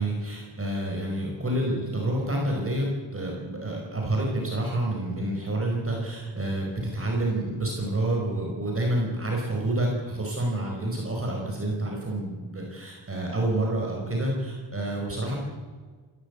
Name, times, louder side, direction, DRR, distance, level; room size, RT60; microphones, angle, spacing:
voice 1, 0.0-15.3, right 1 dB, 30° right, -1 dB, 5.0 m, -28 dB
29.5 x 14.0 x 8.2 m, 1.5 s
wide cardioid pair, 135°, 47 cm